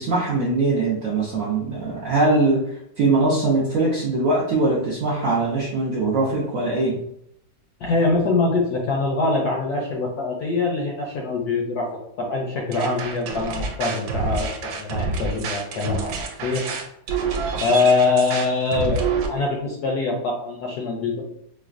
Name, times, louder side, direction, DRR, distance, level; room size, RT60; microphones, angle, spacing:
voice 1, 0.0-2.6 3.0-6.9, right 2 dB, 65° right, -5 dB, 0.8 m, -21 dB
voice 2, 7.8-16.7 17.6-21.2, left 3 dB, 70° left, -1 dB, 0.9 m, -23 dB
sound 1, 12.7-19.3, right 4 dB, 85° right, 1.3 m, -27 dB
4.7 x 2.1 x 2.4 m, 0.75 s
omnidirectional pair, 2.1 m